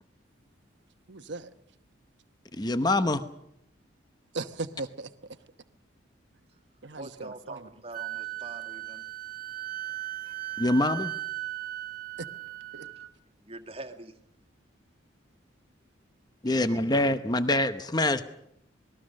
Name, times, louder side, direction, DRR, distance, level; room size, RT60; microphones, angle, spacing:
voice 1, 1.1-1.5 4.3-5.1 6.8-7.7 12.7-12.9, right 3 dB, 65° right, 1.1 m, -37 dB
voice 2, 2.5-3.2 10.6-11.1 16.4-18.2, left 1 dB, 20° left, 0.9 m, -25 dB
voice 3, 7.0-9.0 12.8-12.9 13.4-14.1 16.5-16.9, right 2 dB, 30° right, 1.9 m, -44 dB
Wind instrument woodwind instrument, 7.9-13.1, right 16 dB, 50° right, 1.5 m, -37 dB
27.0 x 20.0 x 6.5 m
head